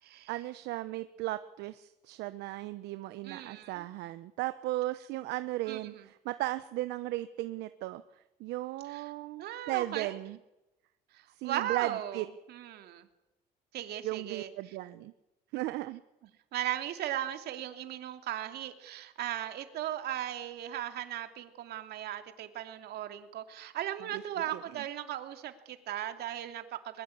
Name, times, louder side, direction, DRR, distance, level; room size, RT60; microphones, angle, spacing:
voice 1, 0.3-8.0 8.4-10.4 11.4-12.2 14.0-15.1 15.5-16.0 24.1-24.2 24.5-24.6, right 17 dB, 90° right, 12 dB, 0.9 m, -36 dB
voice 2, 3.2-3.8 5.7-6.0 8.9-9.1 9.4-10.2 11.1-13.1 13.7-14.5 16.5-27.0, right 12 dB, 70° right, 8 dB, 2.7 m, -37 dB
22.5 x 22.0 x 8.6 m, 0.94 s
cardioid pair, 110°, 17 cm